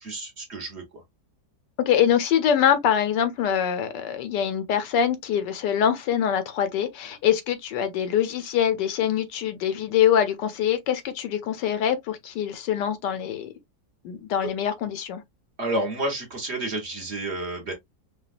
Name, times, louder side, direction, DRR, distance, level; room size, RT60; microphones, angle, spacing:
voice 1, 0.0-1.0 14.4-14.5 15.6-17.7, right 1 dB, 40° right, 1.3 m, -30 dB
voice 2, 1.9-13.5 14.0-15.2, left 9 dB, 80° left, 1.4 m, -24 dB
5.0 x 2.4 x 2.4 m
omnidirectional pair, 1.9 m